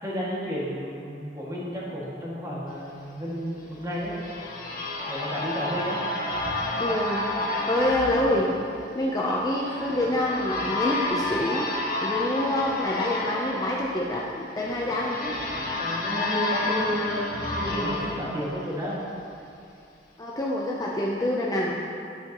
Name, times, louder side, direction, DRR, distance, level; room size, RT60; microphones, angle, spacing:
voice 1, 0.0-4.1 5.1-6.0 15.8-19.0, equal, 20° right, -7 dB, 2.0 m, -32 dB
sound 1, 3.6-19.3, left 2 dB, 50° left, 1.4 m, -31 dB
voice 2, 6.8-7.3 7.7-8.5 8.9-11.7 12.0-15.3 20.2-21.8, left 1 dB, 20° left, -3 dB, 0.6 m, -26 dB
10.5 x 9.1 x 3.0 m, 2.4 s
head